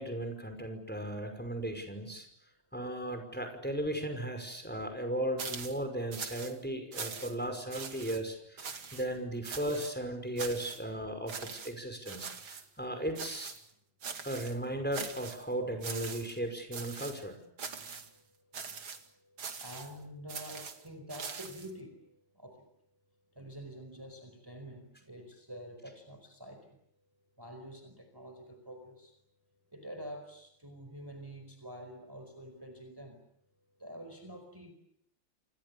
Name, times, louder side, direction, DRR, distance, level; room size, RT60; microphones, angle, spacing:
voice 1, 0.0-2.3 2.7-13.5 14.2-17.4, right 1 dB, 5° left, 6 dB, 5.6 m, -36 dB
sound 1, 5.4-5.8 6.1-6.6 6.9-7.4 7.7-8.2 8.6-9.1 9.4-9.9 10.4-10.8 11.3-11.7 12.1-12.7 13.2-13.7 14.0-14.6 14.9-15.4 15.8-16.4 16.7-17.2 17.6-18.1 18.5-19.0 19.4-19.9 20.3-21.7, right 5 dB, 85° right, 3.1 m, -42 dB
voice 2, 18.5-22.1 22.3-22.6 23.3-26.8 27.4-29.1 29.7-33.2 33.8-34.7, equal, 10° right, 7 dB, 4.8 m, -47 dB
29.0 x 28.0 x 7.1 m, 0.70 s
omnidirectional pair, 2.2 m